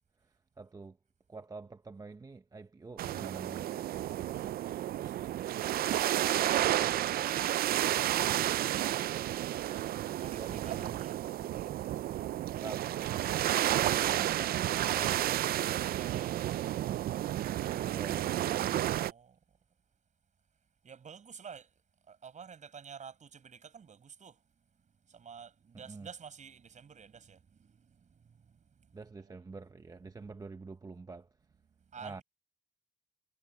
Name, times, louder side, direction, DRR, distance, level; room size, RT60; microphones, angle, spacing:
voice 1, 0.2-1.0 1.3-3.9 10.4-11.0 12.6-13.1 13.8-15.4 17.8-18.9 25.7-26.1 28.9-31.4 32.0-32.2, right 3 dB, 25° right, 0.8 m, -47 dB
sound 1, 3.0-19.1, right 13 dB, 85° right, 0.4 m, -31 dB
voice 2, 5.0-7.9 9.5-11.2 14.8-16.9 19.0-19.6 20.8-29.3 31.7-32.2, right 6 dB, 55° right, 5.7 m, -51 dB
cardioid pair, 105°, 15 cm